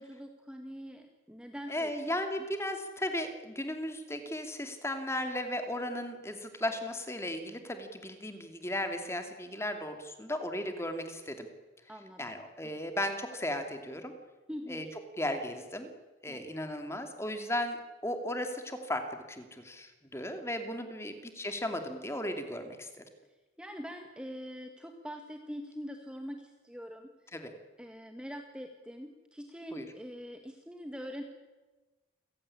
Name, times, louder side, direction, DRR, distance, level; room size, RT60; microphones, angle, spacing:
voice 1, 0.0-1.9 11.9-12.2 14.5-15.0 16.3-16.4 21.0-21.2 23.6-27.3 27.8-31.2, equal, 5° right, 4 dB, 1.6 m, -43 dB
voice 2, 1.7-11.5 12.2-14.1 14.7-14.8 15.2-15.9 16.2-23.0 27.3-27.5 29.7-29.9, left 1 dB, 15° left, 6 dB, 2.7 m, -36 dB
28.5 x 16.5 x 10.0 m, 1.2 s
head